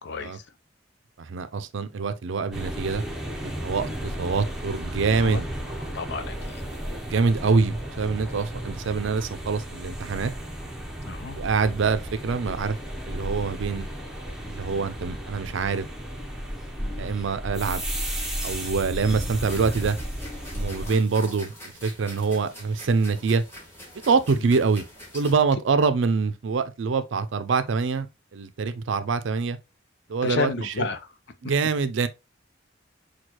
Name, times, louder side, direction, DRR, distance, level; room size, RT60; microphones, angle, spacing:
voice 1, 0.0-0.4 4.0-4.2 5.2-5.4 5.9-6.6 11.0-11.4 16.8-17.1 20.8-21.0 24.4-24.5 30.2-31.1, left 4 dB, 60° left, 0.5 m, -32 dB
voice 2, 1.2-3.0 3.4-5.5 7.1-10.3 11.4-12.8 13.0-13.9 14.5-15.9 17.0-17.8 18.4-20.0 20.5-21.5 21.8-23.4 24.0-24.8 25.1-29.6 30.1-30.9 31.4-32.1, right 4 dB, 65° right, 0.4 m, -25 dB
sound 1, 2.5-20.9, equal, 5° right, 0.7 m, -34 dB
sound 2, 19.5-25.3, equal, 15° left, 1.7 m, -44 dB
6.2 x 2.3 x 2.9 m
head